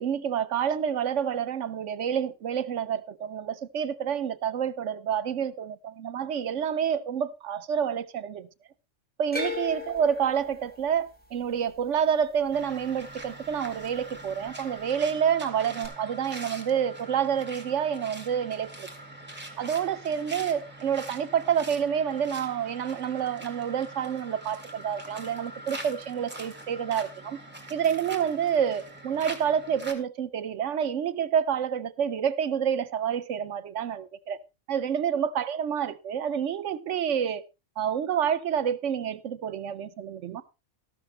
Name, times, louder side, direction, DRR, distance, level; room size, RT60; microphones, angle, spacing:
voice 1, 0.0-8.5 9.2-18.9 19.6-27.4 27.7-34.4 34.7-37.4 37.8-40.4, right 8 dB, 75° right, 1.1 m, -28 dB
sound 1, 9.3-13.5 13.8-14.5 15.8-15.9, left 3 dB, 5° left, 2.4 m, -38 dB
sound 2, 12.5-29.9, right 1 dB, 10° right, 2.1 m, -43 dB
13.5 x 12.0 x 3.2 m
omnidirectional pair, 1.3 m